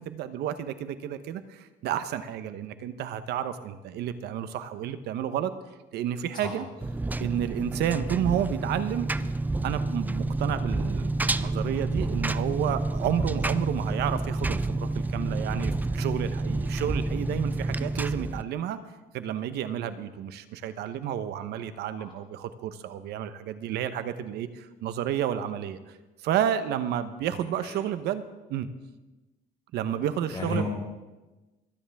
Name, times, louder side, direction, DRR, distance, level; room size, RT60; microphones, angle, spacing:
voice 1, 0.0-5.5 5.9-6.6 7.2-9.1 9.6-18.8 19.1-25.8 26.2-28.2 28.5-28.7 29.7-30.7, right 10 dB, 75° right, 11 dB, 1.0 m, -31 dB
Engine, 6.8-18.4, right 2 dB, 10° right, 0.4 m, -29 dB
voice 2, 30.3-30.7, left 3 dB, 30° left, -3 dB, 5.8 m, -32 dB
23.0 x 9.9 x 3.6 m, 1.1 s
cardioid pair, 110°, 17 cm